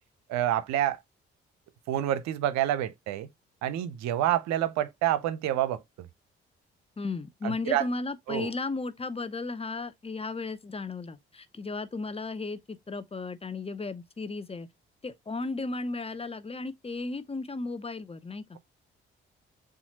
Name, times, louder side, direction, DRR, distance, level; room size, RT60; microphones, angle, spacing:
voice 1, 0.3-1.0 1.9-3.3 3.6-6.1 7.4-7.9 8.3-8.5, right 12 dB, 65° right, 0.7 m, -28 dB
voice 2, 7.0-14.7 15.0-18.6, left 3 dB, 20° left, 0.7 m, -35 dB
7.0 x 2.5 x 2.8 m
hypercardioid pair, 40°, 29 cm